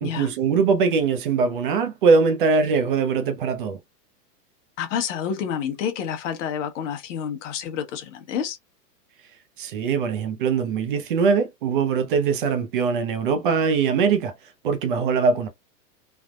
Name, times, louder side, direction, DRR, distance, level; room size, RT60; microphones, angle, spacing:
voice 1, 0.0-3.8 9.6-14.3 14.6-15.5, right 5 dB, 35° right, 0.5 m, -22 dB
voice 2, 4.8-8.6, left 8 dB, 50° left, 1.0 m, -29 dB
3.4 x 2.0 x 2.3 m
hypercardioid pair, 150°, 49 cm